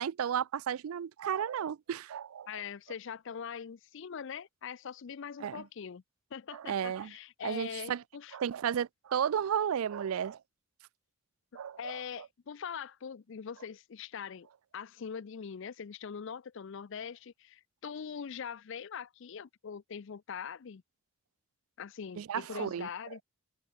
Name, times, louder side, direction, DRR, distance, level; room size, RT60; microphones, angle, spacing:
voice 1, 0.0-2.6 5.4-5.6 6.5-7.1 7.4-8.0 8.3-10.4 11.5-12.0 22.2-22.9, right 8 dB, 75° right, 0.4 m, -33 dB
voice 2, 2.5-6.0 6.3-8.4 11.8-14.5 14.7-20.8 21.8-23.2, left 7 dB, 60° left, 0.4 m, -42 dB
head